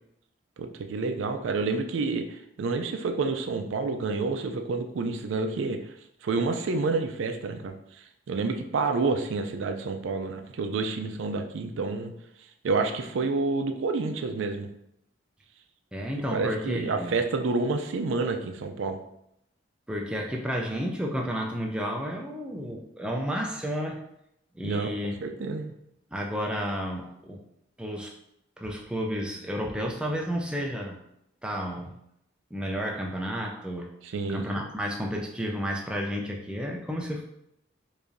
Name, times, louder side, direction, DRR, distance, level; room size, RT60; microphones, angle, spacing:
voice 1, 0.6-5.9 6.2-12.1 12.6-14.7 16.3-19.0 24.6-24.9 25.2-25.7 34.0-34.4, right 3 dB, 80° right, 6 dB, 0.4 m, -29 dB
voice 2, 15.9-17.2 19.9-24.0 24.5-25.1 26.1-27.4 27.8-28.1 28.6-31.0 31.4-31.9 32.5-33.9 34.3-37.2, equal, 5° right, 0 dB, 0.3 m, -31 dB
4.8 x 2.6 x 2.6 m, 0.79 s
head